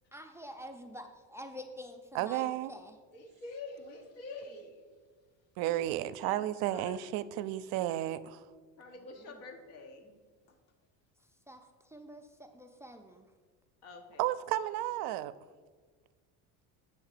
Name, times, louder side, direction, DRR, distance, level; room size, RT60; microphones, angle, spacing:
voice 1, 0.1-3.0 11.5-11.6 11.9-13.3, equal, 10° right, 5 dB, 0.3 m, -47 dB
voice 2, 2.1-2.7 5.6-8.4 14.2-15.3, right 14 dB, 65° right, 15 dB, 0.5 m, -32 dB
voice 3, 3.1-4.9 5.6-6.4 6.7-7.3 8.8-10.1 13.8-14.3, left 3 dB, 85° left, 3 dB, 1.5 m, -47 dB
7.2 x 4.0 x 6.6 m, 1.5 s
cardioid pair, 120°, 39 cm